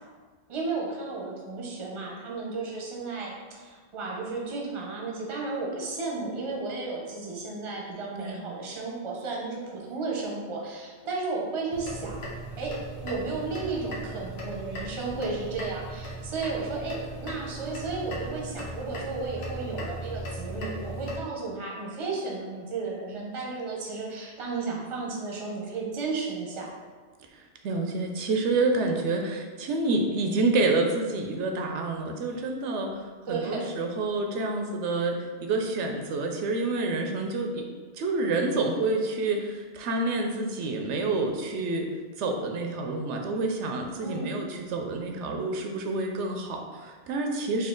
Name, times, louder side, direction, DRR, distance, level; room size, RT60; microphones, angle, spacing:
voice 1, 0.5-12.2 12.6-26.7 32.3-32.5 33.3-33.8 44.0-44.4, right 3 dB, 30° right, -2 dB, 0.7 m, -33 dB
voice 2, 8.2-8.5 27.3-27.4 27.6-32.9 33.3-37.7 38.0-41.9 42.2-47.7, right 3 dB, 85° right, 3 dB, 0.9 m, -28 dB
sound 1, 11.7-21.2, right 1 dB, 70° left, 1.0 m, -38 dB
4.3 x 2.6 x 3.7 m, 1.5 s
omnidirectional pair, 1.2 m